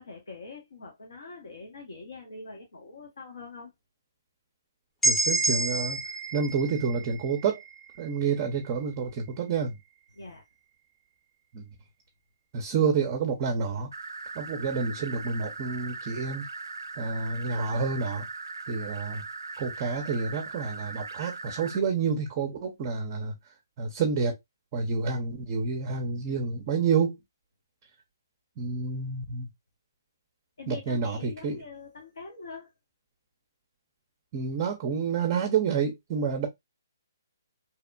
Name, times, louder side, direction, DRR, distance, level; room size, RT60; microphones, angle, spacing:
voice 1, 0.0-3.7 10.1-10.4 30.6-32.7, left 3 dB, 70° left, 0.8 m, -44 dB
sound 1, 5.0-8.8, right 3 dB, 10° left, 0.7 m, -30 dB
voice 2, 5.0-6.0 6.3-7.6 8.0-9.8 11.5-11.7 12.5-13.9 14.3-16.5 17.0-18.2 18.7-19.2 19.6-23.3 23.8-24.4 24.7-27.2 28.6-29.5 30.7-31.6 34.3-36.5, right 5 dB, 30° right, 0.5 m, -29 dB
sound 2, 13.9-21.8, right 3 dB, 90° right, 0.3 m, -39 dB
2.8 x 2.1 x 2.3 m
hypercardioid pair, 145°, 2 cm